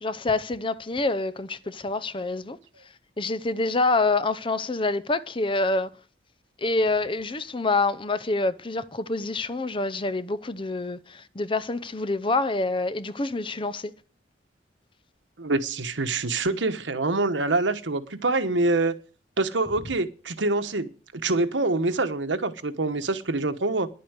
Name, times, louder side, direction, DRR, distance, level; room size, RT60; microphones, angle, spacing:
voice 1, 0.0-2.6 3.2-5.9 6.6-13.9, left 3 dB, 30° left, 0.7 m, -26 dB
voice 2, 15.4-18.9 19.4-23.9, right 2 dB, 85° right, 1.2 m, -25 dB
10.5 x 8.4 x 8.1 m
head